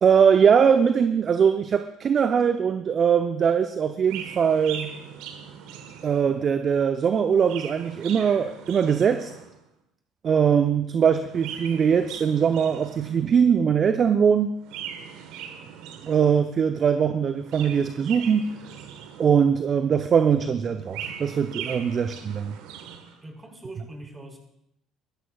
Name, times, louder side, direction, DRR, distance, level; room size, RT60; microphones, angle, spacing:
voice 1, 0.0-4.9 6.0-9.3 10.2-14.5 16.0-18.5 19.2-22.5, right 7 dB, 45° right, 9 dB, 0.7 m, -21 dB
Chirp tweet, 4.0-6.5 7.2-9.6 11.2-13.4 14.6-16.5 17.3-19.6 20.6-23.2, right 8 dB, 70° right, 1.3 m, -40 dB
voice 2, 23.2-24.4, right 2 dB, 25° right, 2 dB, 4.8 m, -42 dB
23.5 x 13.5 x 2.4 m, 0.82 s
hypercardioid pair, 60°, 0 cm